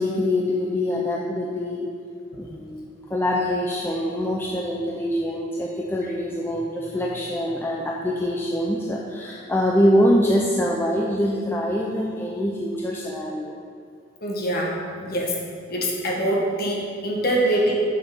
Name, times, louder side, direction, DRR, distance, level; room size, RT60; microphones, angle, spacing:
voice 1, 0.0-1.9 2.4-13.6, left 1 dB, 10° left, -2 dB, 0.6 m, -24 dB
voice 2, 14.2-15.3 15.7-17.7, right 1 dB, 55° left, -2 dB, 1.7 m, -24 dB
6.7 x 6.7 x 6.0 m, 2.4 s
head